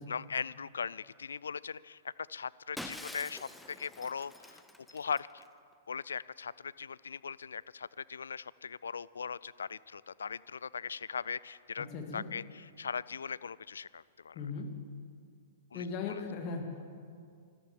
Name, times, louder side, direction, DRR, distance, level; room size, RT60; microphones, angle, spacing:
voice 1, 0.1-4.6 4.9-5.4 5.9-11.9 12.1-14.4 15.7-16.2, left 6 dB, 75° left, 20 dB, 0.3 m, -39 dB
Shatter, 2.8-5.5, left 1 dB, 5° left, 0.9 m, -46 dB
voice 2, 11.8-12.3 14.3-14.7 15.7-16.8, left 5 dB, 40° left, 3 dB, 2.4 m, -38 dB
13.5 x 12.5 x 7.4 m, 2.3 s
figure-of-eight pair, 110°, 0 cm